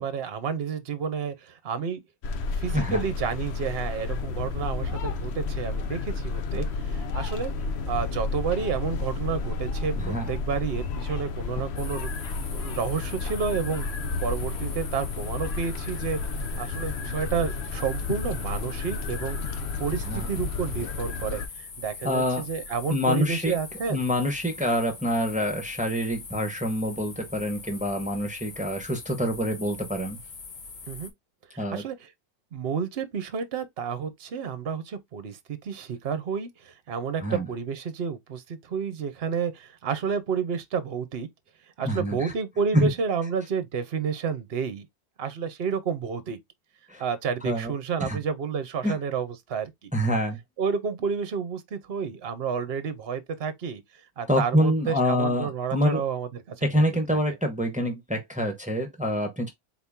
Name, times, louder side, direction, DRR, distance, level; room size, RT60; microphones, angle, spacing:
voice 1, 0.0-2.0 2.6-7.5 7.9-12.1 12.5-16.2 16.6-24.1 30.9-31.1 31.5-32.1 32.5-41.3 41.8-44.9 45.2-46.4 47.0-49.9 50.6-53.8 54.2-56.8 57.3-57.4, right 6 dB, 50° right, 1.0 m, -30 dB
sound 1, 2.2-21.5, left 4 dB, 60° left, 0.8 m, -31 dB
voice 2, 2.7-3.0 9.9-10.3 20.0-20.3 22.0-22.4 22.9-23.5 23.9-30.2 31.6-31.8 37.2-37.5 41.8-42.3 42.7-42.9 46.9-47.0 47.4-47.7 48.0-48.2 48.8-48.9 49.9-50.4 54.3-56.0 56.6-59.5, equal, 5° right, 1.0 m, -26 dB
sound 2, 11.8-31.1, left 4 dB, 85° left, 1.7 m, -42 dB
4.4 x 2.9 x 3.6 m
omnidirectional pair, 1.6 m